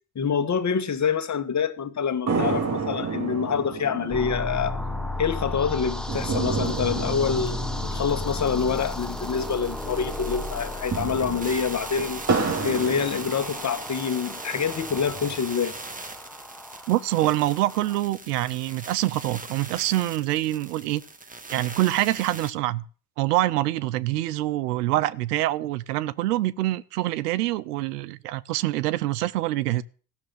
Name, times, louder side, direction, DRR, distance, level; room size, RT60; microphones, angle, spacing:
voice 1, 0.1-4.8 5.2-12.2 12.6-15.7, left 6 dB, 35° left, 1.6 m, -26 dB
sound 1, 2.3-9.9 10.1-10.2 10.7-14.0 14.5-15.5, right 4 dB, 35° right, 2.7 m, -31 dB
sound 2, 4.1-18.0, left 2 dB, ahead, 1.3 m, -34 dB
sound 3, 6.2-6.3 6.5-22.5, right 3 dB, 15° right, 1.5 m, -41 dB
voice 2, 16.9-21.0 21.5-22.8 23.2-29.8, right 16 dB, 90° right, 0.6 m, -25 dB
14.5 x 6.6 x 7.6 m
hypercardioid pair, 65°, 45 cm